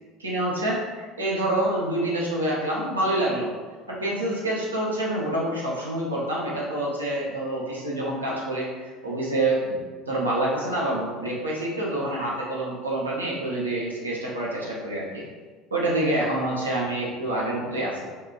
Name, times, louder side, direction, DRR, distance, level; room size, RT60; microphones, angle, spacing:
voice 1, 0.2-3.5 3.9-9.8 10.1-15.2 15.7-18.0, right 1 dB, 85° right, -5 dB, 0.7 m, -27 dB
4.6 x 2.3 x 2.3 m, 1.4 s
figure-of-eight pair, 65°, 0 cm